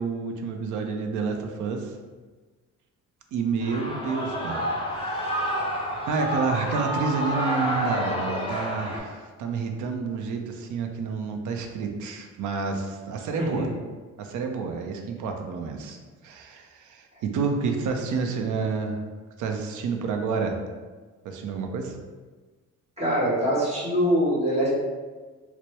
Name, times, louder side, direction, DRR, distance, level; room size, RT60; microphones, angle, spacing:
voice 1, 0.0-1.9 3.3-4.7 4.9-5.6 6.0-13.7 14.2-16.0 16.2-19.0 19.4-20.6 21.2-22.0, right 5 dB, 80° right, 4 dB, 0.6 m, -29 dB
Shout / Cheering, 3.6-9.0, equal, 20° left, 0.8 m, -29 dB
voice 2, 23.0-24.7, equal, 20° right, -6 dB, 1.4 m, -23 dB
4.4 x 2.1 x 3.0 m, 1.4 s
cardioid pair, 90°, 30 cm